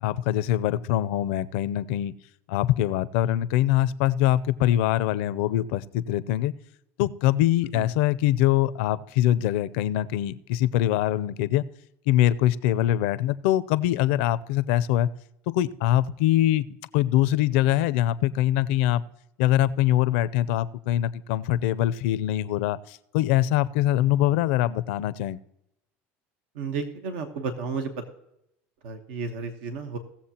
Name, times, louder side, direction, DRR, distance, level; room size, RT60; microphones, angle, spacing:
voice 1, 0.0-2.1 2.5-6.5 7.0-11.6 12.1-15.1 15.5-16.7 16.9-19.0 19.4-25.4, left 13 dB, 80° left, 16 dB, 0.5 m, -23 dB
voice 2, 26.5-28.1 28.8-30.0, right 5 dB, 85° right, 6 dB, 1.1 m, -32 dB
17.5 x 7.2 x 2.9 m, 0.81 s
supercardioid pair, 100°, 6 cm